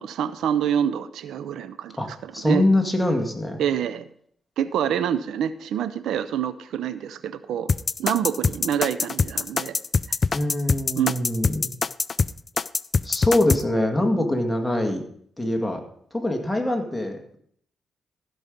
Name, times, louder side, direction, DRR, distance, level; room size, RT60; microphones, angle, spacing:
voice 1, 0.0-2.6 3.6-4.1 4.6-7.7 8.0-9.8 10.1-10.2 11.0-11.1, right 9 dB, 85° right, 14 dB, 0.5 m, -26 dB
voice 2, 2.3-3.6 10.3-11.7 13.0-15.0 15.4-15.8 16.1-17.4, left 1 dB, 5° left, 3 dB, 2.0 m, -23 dB
sound 1, 7.7-13.6, left 4 dB, 45° left, 0.3 m, -23 dB
14.5 x 5.6 x 5.2 m, 0.64 s
cardioid pair, 70°, 0 cm